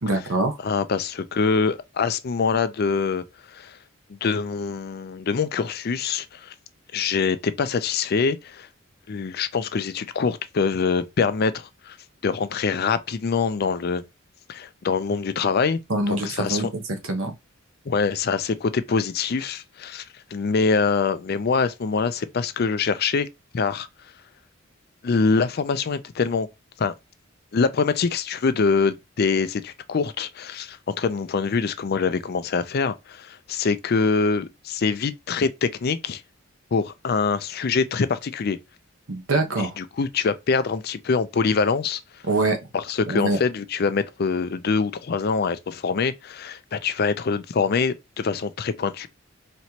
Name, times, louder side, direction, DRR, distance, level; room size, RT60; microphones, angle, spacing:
voice 1, 0.0-0.6 15.9-16.7 17.0-17.3 39.1-39.8 42.2-42.6 43.1-43.4, right 2 dB, 75° right, 1.0 m, -24 dB
voice 2, 0.6-3.8 4.1-6.5 6.9-8.7 9.1-12.0 12.2-14.0 14.5-15.8 16.1-16.7 17.9-20.0 20.3-23.3 23.5-23.9 25.0-26.5 26.8-26.9 27.5-36.2 36.7-38.6 39.8-42.0 42.7-49.1, left 5 dB, 50° left, 0.4 m, -24 dB
4.4 x 3.0 x 2.8 m
head